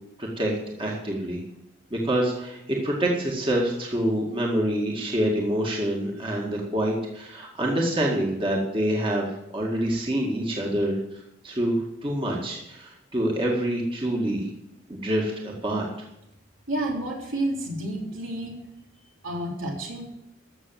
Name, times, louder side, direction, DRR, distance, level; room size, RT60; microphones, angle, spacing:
voice 1, 0.2-1.4 1.9-14.5 14.9-15.9, right 1 dB, 25° right, -2 dB, 2.0 m, -26 dB
voice 2, 16.7-18.6 19.2-20.0, right 1 dB, 75° right, -1 dB, 3.6 m, -30 dB
14.5 x 6.9 x 7.7 m, 0.85 s
head